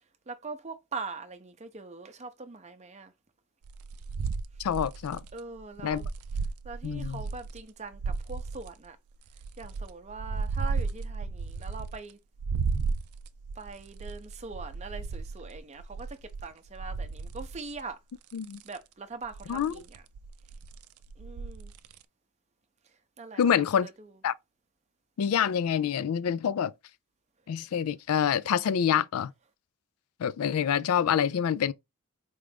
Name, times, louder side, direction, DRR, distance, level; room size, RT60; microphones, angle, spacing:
voice 1, 0.3-3.1 5.3-6.0 6.6-9.0 9.6-12.2 13.6-18.0 18.6-20.0 21.2-21.7 23.2-24.1, right 4 dB, 30° right, 0.6 m, -42 dB
sound 1, 3.6-7.6 7.9-8.7 9.3-12.1 12.4-17.9 18.3-18.8 19.2-22.0, right 4 dB, 80° right, 0.4 m, -35 dB
voice 2, 4.6-5.2 5.8-6.0 6.8-7.2 18.3-18.6 19.5-19.7 23.4-23.9 24.2-24.3 25.2-26.7 27.5-29.3 30.2-31.7, left 8 dB, 80° left, 0.4 m, -26 dB
4.4 x 2.5 x 3.4 m
head